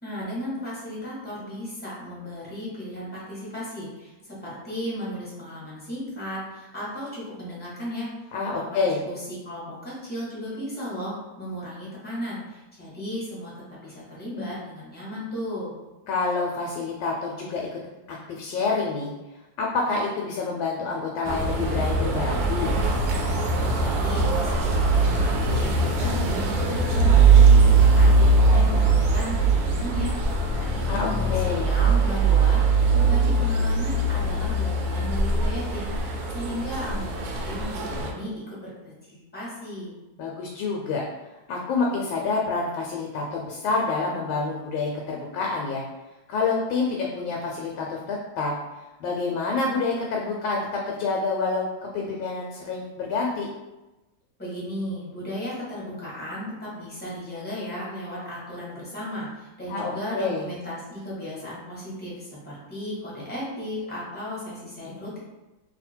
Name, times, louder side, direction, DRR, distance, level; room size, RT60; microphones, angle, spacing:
voice 1, 0.0-8.1 8.5-8.8 9.0-15.7 23.7-39.9 54.4-65.2, equal, 5° left, -8 dB, 0.9 m, -35 dB
voice 2, 8.3-9.0 16.1-17.8 18.1-19.1 19.6-22.7 30.9-31.7 40.2-41.0 41.5-45.8 46.3-48.5 49.0-51.7 51.9-53.5 59.7-60.4, left 4 dB, 75° left, -1 dB, 1.3 m, -27 dB
sound 1, 21.2-38.1, right 3 dB, 75° right, 0.9 m, -21 dB
2.8 x 2.8 x 4.2 m, 1.1 s
omnidirectional pair, 2.2 m